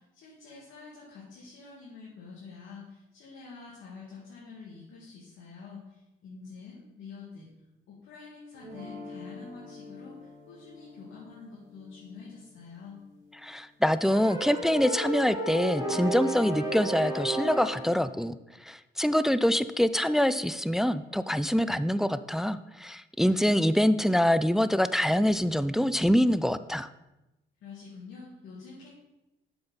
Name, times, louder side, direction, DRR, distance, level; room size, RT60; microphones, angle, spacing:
voice 1, 0.0-7.5 7.9-13.0 27.6-28.9, left 4 dB, 80° left, -5 dB, 2.0 m, -47 dB
sound 1, 8.5-14.6, left 3 dB, 75° right, 2.5 m, -49 dB
voice 2, 13.4-18.4 18.6-26.9, equal, ahead, 14 dB, 0.3 m, -25 dB
sound 2, 14.0-18.0, right 1 dB, 20° right, 1.7 m, -33 dB
7.8 x 7.0 x 4.0 m, 0.98 s
cardioid pair, 90°, 20 cm